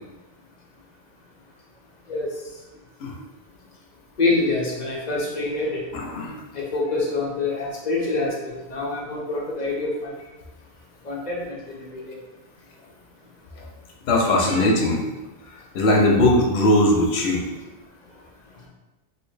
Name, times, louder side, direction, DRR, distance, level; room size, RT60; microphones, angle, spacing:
voice 1, 4.2-5.8 6.5-8.3 8.7-10.1 11.0-12.2 14.4-14.7, left 3 dB, 45° left, -2 dB, 0.7 m, -26 dB
voice 2, 5.9-6.3 14.1-15.0 15.7-17.4, left 1 dB, 75° left, 0 dB, 0.9 m, -19 dB
3.2 x 2.8 x 3.2 m, 1.1 s
omnidirectional pair, 1.1 m